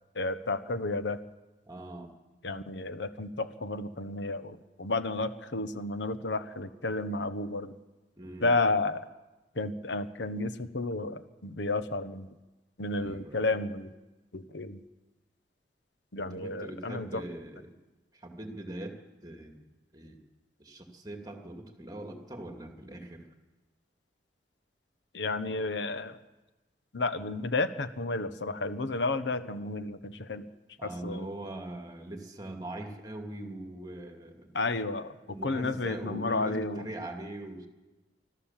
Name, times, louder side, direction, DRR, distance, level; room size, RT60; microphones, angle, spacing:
voice 1, 0.1-1.2 2.4-7.7 8.4-9.0 9.6-12.3 12.8-13.9 14.3-14.8 16.1-17.2 25.1-26.2 26.9-30.4 30.8-31.3 34.5-35.1 35.4-36.9, left 2 dB, 80° left, 11 dB, 1.2 m, -32 dB
voice 2, 1.7-2.1 8.2-8.7 13.0-13.5 16.2-17.7 18.1-19.6 19.9-20.2 20.6-23.2 30.8-34.5 35.3-37.7, right 1 dB, 20° right, 4 dB, 2.3 m, -41 dB
25.5 x 13.5 x 7.4 m, 1.1 s
head